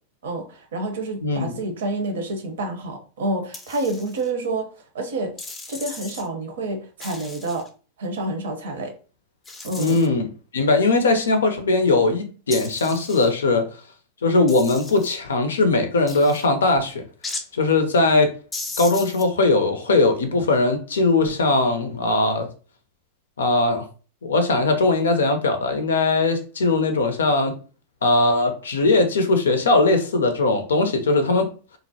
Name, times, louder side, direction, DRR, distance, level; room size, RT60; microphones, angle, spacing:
voice 1, 0.2-4.7 4.9-5.3 5.7-7.6 8.0-8.9 9.6-10.0, right 2 dB, 75° right, 0.6 m, -28 dB
voice 2, 1.2-1.6 9.8-10.2 10.5-13.7 14.2-17.0 17.5-18.3 18.8-22.5 23.4-23.8 24.2-27.5 28.0-31.5, left 2 dB, 85° left, 0.5 m, -20 dB
sound 1, 3.5-4.3 5.4-6.3 7.0-7.7 9.4-10.1 12.5-13.3 14.5-15.2 16.1-16.4 17.2-17.5 18.5-19.2, left 3 dB, 20° left, 0.4 m, -36 dB
2.5 x 2.0 x 2.6 m
hypercardioid pair, 105°, 0 cm